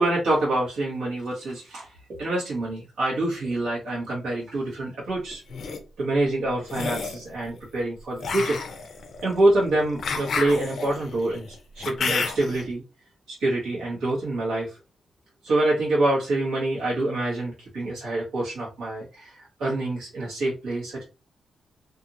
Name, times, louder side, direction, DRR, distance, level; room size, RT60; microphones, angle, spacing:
voice 1, 0.0-5.4 6.0-8.6 9.2-12.8 13.3-14.8 15.4-21.0, right 2 dB, 80° right, -7 dB, 1.2 m, -26 dB
sound 1, 5.3-5.8 6.7-7.2 8.2-12.6, left 4 dB, 50° left, 0.6 m, -30 dB
2.8 x 2.6 x 2.5 m, 0.31 s
wide cardioid pair, 170°, 0 cm